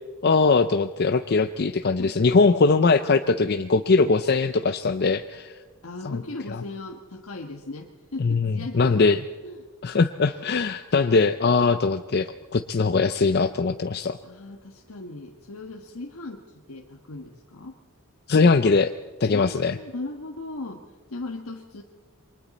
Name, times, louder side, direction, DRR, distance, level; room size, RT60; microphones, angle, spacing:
voice 1, 0.2-5.6 6.0-6.1 8.2-9.2 9.8-14.2 18.3-18.9 19.2-19.8, left 4 dB, 50° left, 9 dB, 0.5 m, -21 dB
voice 2, 2.0-2.8 4.0-4.2 5.8-9.1 9.4-9.6 14.2-17.8 19.3-20.8 21.1-21.8, left 2 dB, 80° left, 1 dB, 1.3 m, -38 dB
28.0 x 23.5 x 4.2 m, 1.4 s
head